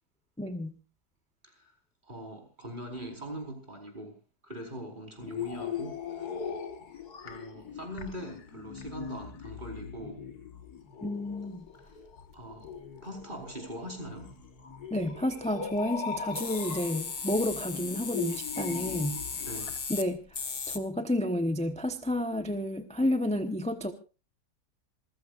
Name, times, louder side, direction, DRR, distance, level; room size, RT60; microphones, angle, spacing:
voice 1, 0.4-0.8 11.0-11.7 14.9-19.2 19.9-23.9, left 1 dB, 5° left, 8 dB, 0.7 m, -31 dB
voice 2, 2.0-4.1 4.4-6.3 7.2-10.2 12.3-12.7 13.0-14.3 19.5-19.7, right 1 dB, 25° right, 3 dB, 4.8 m, -42 dB
sound 1, 5.2-19.8, left 7 dB, 65° left, 2.0 m, -40 dB
sound 2, 11.7-11.9 12.6-12.9 15.8-15.9 16.2-20.8, left 5 dB, 35° left, 0.9 m, -37 dB
27.5 x 15.0 x 2.5 m, 0.32 s
omnidirectional pair, 1.8 m